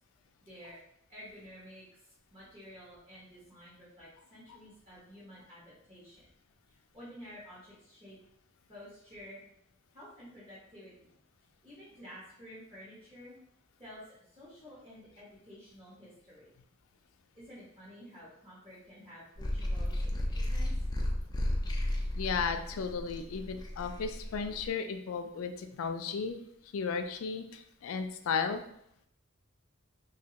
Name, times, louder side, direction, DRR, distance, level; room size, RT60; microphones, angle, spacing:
voice 1, 0.4-0.8 1.1-2.0 2.3-6.3 6.7-8.2 8.7-9.4 9.9-11.1 11.6-13.3 13.8-16.5 17.3-20.7, equal, 30° right, -10 dB, 1.2 m, -51 dB
sound 1, 19.4-24.7, left 1 dB, 20° left, 0.4 m, -34 dB
voice 2, 22.1-26.4 26.7-28.6, left 5 dB, 90° left, 7 dB, 0.4 m, -34 dB
3.2 x 2.7 x 2.9 m, 0.73 s
head